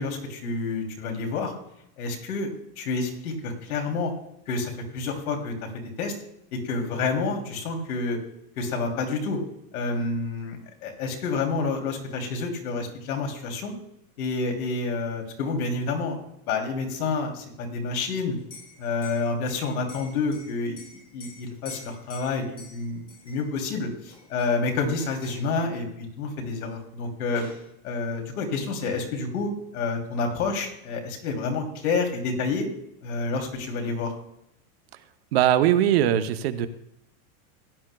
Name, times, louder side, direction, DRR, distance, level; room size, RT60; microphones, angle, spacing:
voice 1, 0.0-1.5 2.0-2.5 2.8-4.1 4.5-5.5 6.0-6.1 6.5-8.2 8.6-9.4 9.7-13.7 14.2-16.2 16.5-18.4 18.8-20.8 21.1-27.5 27.8-32.7 33.0-34.1, left 3 dB, 85° left, 2 dB, 2.9 m, -29 dB
Liquid, 18.4-23.7 24.1-24.7 25.0-25.5 26.7-26.8 27.1-27.7, left 3 dB, 10° left, 0.8 m, -48 dB
voice 2, 35.3-36.7, right 11 dB, 45° right, 10 dB, 0.6 m, -20 dB
16.5 x 10.0 x 2.2 m, 0.77 s
supercardioid pair, 180°, 43 cm